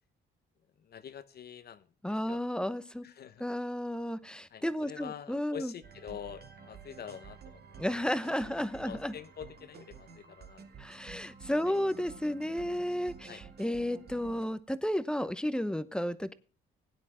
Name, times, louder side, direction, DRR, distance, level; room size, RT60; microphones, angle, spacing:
voice 1, 0.8-2.4 3.0-3.4 4.5-7.8 8.4-10.6 11.6-11.7 13.3-13.4, left 9 dB, 55° left, 11 dB, 0.8 m, -46 dB
voice 2, 2.0-3.0 3.4-5.7 7.8-9.1 10.8-16.3, equal, 5° left, 14 dB, 0.9 m, -33 dB
sound 1, 5.8-14.5, right 6 dB, 55° right, 2.4 m, -51 dB
17.0 x 9.7 x 3.7 m, 0.33 s
cardioid pair, 90°, 20 cm